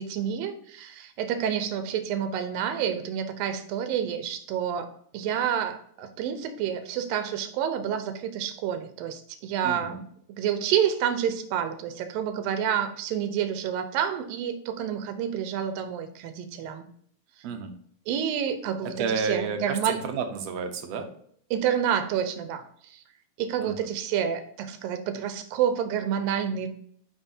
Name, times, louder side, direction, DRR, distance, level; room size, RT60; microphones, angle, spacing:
voice 1, 0.0-10.0 10.3-16.9 18.1-20.0 21.5-23.0 23.4-26.7, right 9 dB, 85° right, 9 dB, 2.6 m, -29 dB
voice 2, 9.6-10.0 17.4-17.7 19.0-21.1 23.6-23.8, right 5 dB, 65° right, 6 dB, 1.8 m, -31 dB
12.0 x 4.7 x 2.8 m, 0.64 s
omnidirectional pair, 4.0 m